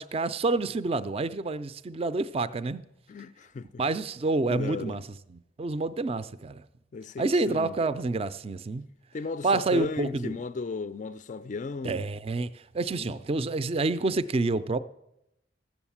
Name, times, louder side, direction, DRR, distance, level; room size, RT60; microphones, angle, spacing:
voice 1, 0.0-2.8 3.8-5.0 5.3-6.6 7.2-8.8 9.4-10.3 11.8-14.8, right 3 dB, 30° right, 0.4 m, -28 dB
voice 2, 3.1-3.8 4.5-5.0 6.9-7.7 9.1-12.1 12.9-13.2, left 4 dB, 40° left, 0.4 m, -35 dB
14.5 x 7.1 x 7.2 m
head